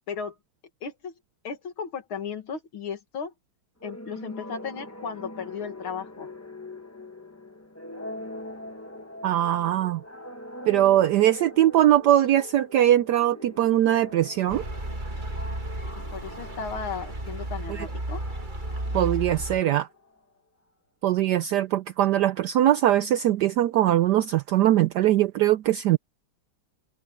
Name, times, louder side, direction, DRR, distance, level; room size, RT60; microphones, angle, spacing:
voice 1, 0.8-1.1 1.4-3.3 3.8-6.3 16.1-18.2, left 6 dB, 80° left, 2.8 m, -35 dB
sound 1, 3.8-20.2, left 1 dB, 10° left, 0.9 m, -42 dB
voice 2, 9.2-10.0 10.7-14.6 17.7-17.9 18.9-19.9 21.0-26.0, right 12 dB, 80° right, 0.9 m, -21 dB
sound 2, 14.5-19.6, right 1 dB, 25° right, 2.0 m, -33 dB
omnidirectional pair, 2.3 m